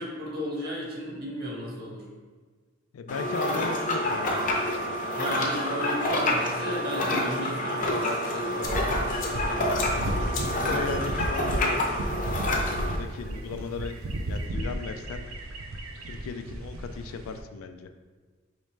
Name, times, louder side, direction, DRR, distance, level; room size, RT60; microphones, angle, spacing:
voice 1, 0.0-2.0 5.2-9.8, equal, 50° right, -3 dB, 1.2 m, -34 dB
voice 2, 2.9-5.0 10.2-11.8 12.4-14.0 14.3-15.3 16.0-17.9, left 5 dB, 85° left, 8 dB, 0.4 m, -37 dB
sound 1, 3.1-13.0, left 1 dB, 40° left, 0.6 m, -28 dB
sound 2, 8.0-14.5, left 4 dB, 65° left, 0.8 m, -44 dB
sound 3, 8.6-17.4, right 1 dB, 80° right, 0.5 m, -33 dB
4.9 x 3.1 x 3.2 m, 1.4 s
head